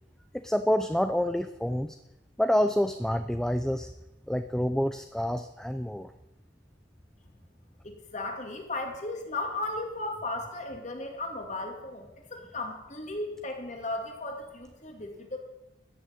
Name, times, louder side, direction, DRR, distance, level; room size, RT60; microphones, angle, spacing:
voice 1, 0.3-2.0 2.4-3.9 4.3-6.1, equal, 5° left, 9 dB, 0.4 m, -27 dB
voice 2, 7.8-15.4, left 2 dB, 40° left, 3 dB, 2.5 m, -36 dB
14.0 x 6.7 x 9.2 m, 0.94 s
head